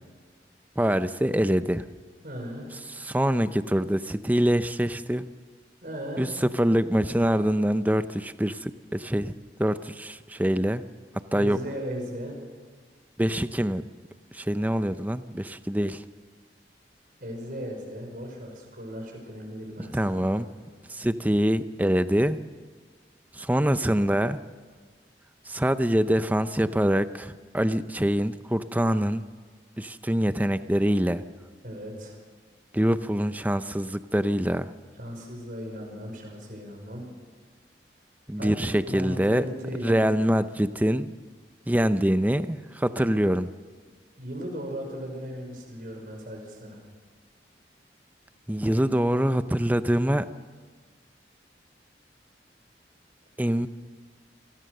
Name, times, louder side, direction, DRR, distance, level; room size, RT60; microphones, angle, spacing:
voice 1, 0.8-1.8 2.9-5.3 6.2-9.3 9.6-10.8 11.3-11.6 13.2-13.9 14.3-16.0 19.8-20.5 20.9-22.4 23.3-24.4 25.5-29.2 29.8-31.2 32.7-34.7 38.3-39.5 39.8-41.1 41.7-43.5 48.5-50.3 53.4-53.7, equal, 10° right, 12 dB, 0.6 m, -25 dB
voice 2, 2.2-2.7 5.8-6.3 11.3-12.4 17.2-20.6 31.6-32.2 35.0-37.1 38.4-40.1 44.2-46.8, equal, 50° right, 2 dB, 5.7 m, -37 dB
27.5 x 19.0 x 6.7 m, 1.5 s
head